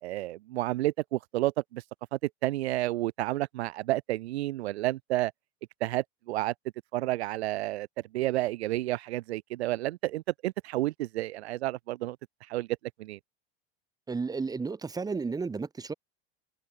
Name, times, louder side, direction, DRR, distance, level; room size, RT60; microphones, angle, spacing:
voice 1, 0.0-1.8 2.1-5.3 5.8-6.5 6.9-7.9 8.1-12.2 12.5-12.7 13.0-13.2, right 16 dB, 90° right, 4.4 m, -30 dB
voice 2, 14.1-15.9, right 4 dB, 10° right, 5.2 m, -32 dB
supercardioid pair, 155°, 31 cm